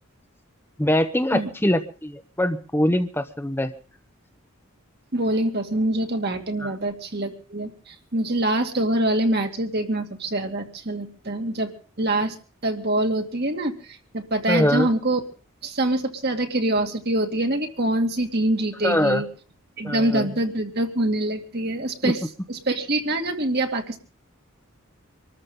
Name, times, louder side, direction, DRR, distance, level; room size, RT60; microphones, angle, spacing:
voice 1, 0.8-3.7 6.6-6.7 14.5-14.9 18.8-19.2 19.8-20.3 22.0-22.1, left 1 dB, 10° left, 7 dB, 1.0 m, -23 dB
voice 2, 5.1-12.4 12.6-15.2 15.6-19.3 19.8-22.2 22.5-24.0, right 1 dB, 50° right, 4 dB, 2.4 m, -25 dB
25.5 x 13.5 x 3.9 m, 0.38 s
head